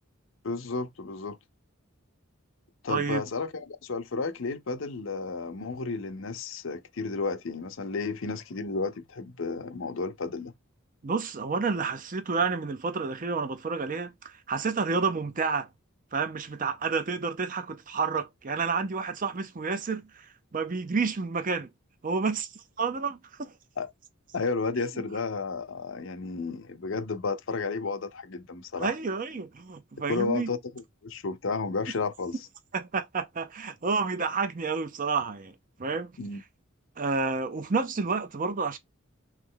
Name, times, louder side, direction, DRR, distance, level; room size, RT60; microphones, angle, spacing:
voice 1, 0.4-1.4 2.8-10.5 23.8-23.9 24.3-29.0 30.1-30.6 31.0-32.4 36.2-36.4, left 4 dB, 65° left, 0.6 m, -32 dB
voice 2, 2.9-3.2 11.0-15.7 16.1-21.7 22.0-22.5 22.8-23.5 28.8-30.5 32.7-35.5 35.8-36.1 37.0-38.8, right 4 dB, 40° right, 0.6 m, -30 dB
3.2 x 3.0 x 3.7 m
head